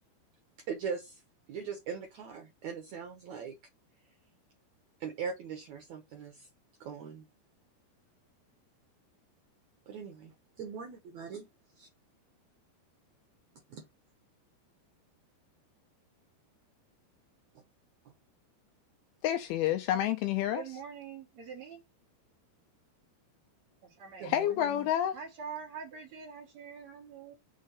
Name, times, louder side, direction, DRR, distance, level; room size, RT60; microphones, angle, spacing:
voice 1, 0.7-1.2 1.5-3.6 5.0-6.5 6.8-7.2 9.9-11.5 11.8-11.9 13.7-13.8 24.2-24.9, right 6 dB, 90° right, 1.6 m, -40 dB
voice 2, 19.2-20.6 24.2-25.2, left 11 dB, 85° left, 2.2 m, -29 dB
voice 3, 20.5-21.8 23.8-24.3 25.1-27.3, right 6 dB, 50° right, 2.3 m, -44 dB
6.3 x 3.6 x 5.4 m
omnidirectional pair, 4.9 m